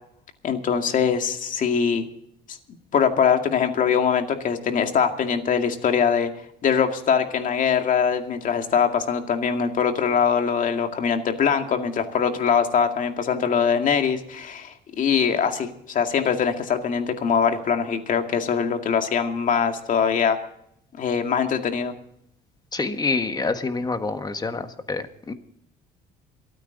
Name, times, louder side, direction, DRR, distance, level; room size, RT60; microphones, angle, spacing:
voice 1, 0.4-2.0 2.5-2.6 2.9-6.3 6.6-20.4 21.0-21.9, left 7 dB, 50° left, 5 dB, 2.3 m, -22 dB
voice 2, 22.7-25.3, left 3 dB, 25° left, 9 dB, 1.4 m, -27 dB
27.5 x 9.3 x 4.0 m, 0.71 s
cardioid pair, 110°, 17 cm